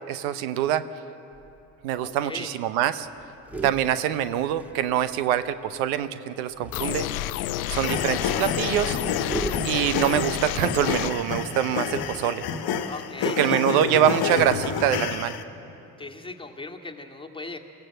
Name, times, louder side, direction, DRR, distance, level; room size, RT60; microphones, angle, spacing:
voice 1, 0.1-0.8 1.8-3.1 3.6-7.1 7.7-9.0 9.6-12.4 13.4-15.3, right 11 dB, 85° right, 13 dB, 0.8 m, -24 dB
sound 1, 1.3-1.8 2.1-2.2 2.5-2.7 3.0-5.4 6.5-13.4, right 1 dB, 5° right, 1.9 m, -40 dB
voice 2, 2.0-2.5 12.9-13.8 16.0-17.6, left 3 dB, 10° left, 1 dB, 2.0 m, -38 dB
sound 2, 6.7-11.1, left 13 dB, 90° left, 0.7 m, -30 dB
sound 3, 7.8-15.4, left 7 dB, 60° left, 1.4 m, -29 dB
22.5 x 15.5 x 7.7 m, 2.8 s
hypercardioid pair, 60°, 41 cm